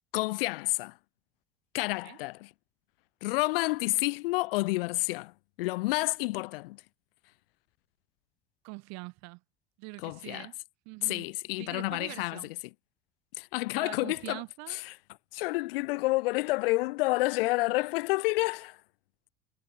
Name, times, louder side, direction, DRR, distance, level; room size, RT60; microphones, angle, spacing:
voice 1, 0.1-0.9 1.7-2.5 3.2-5.3 5.6-6.8 10.0-10.5 11.0-12.4 13.4-14.4 14.7-14.8 15.3-18.8, left 22 dB, 70° left, 1.3 m, -29 dB
voice 2, 8.6-9.4 9.8-10.6 10.9-11.3 11.6-12.5 13.7-14.8, right 27 dB, 60° right, 5.2 m, -44 dB
hypercardioid pair, 65°, 30 cm